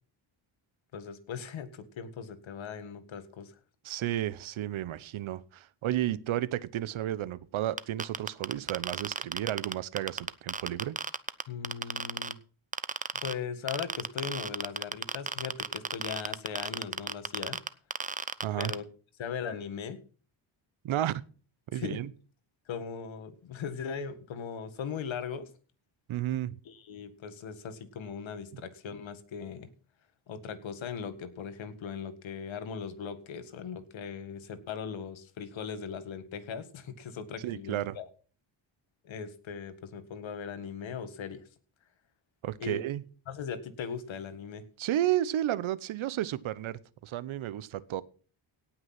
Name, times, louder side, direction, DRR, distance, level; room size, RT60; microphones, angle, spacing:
voice 1, 0.9-3.5 6.1-6.2 11.5-12.4 13.2-17.6 18.6-18.8 19.2-20.0 21.7-22.0 22.7-25.5 26.6-29.7 30.3-38.0 39.0-41.4 42.6-42.8 43.3-44.6, left 6 dB, 70° left, 11 dB, 1.8 m, -39 dB
voice 2, 3.8-11.0 18.4-18.7 20.8-21.2 21.7-22.1 26.1-26.6 28.5-28.6 37.4-38.0 42.4-43.0 44.8-48.0, right 13 dB, 75° right, 19 dB, 0.9 m, -32 dB
sound 1, 7.8-12.3 12.7-13.3 13.7-18.7, right 4 dB, 15° right, 0.6 m, -32 dB
17.5 x 6.0 x 6.0 m, 0.39 s
cardioid pair, 95°, 49 cm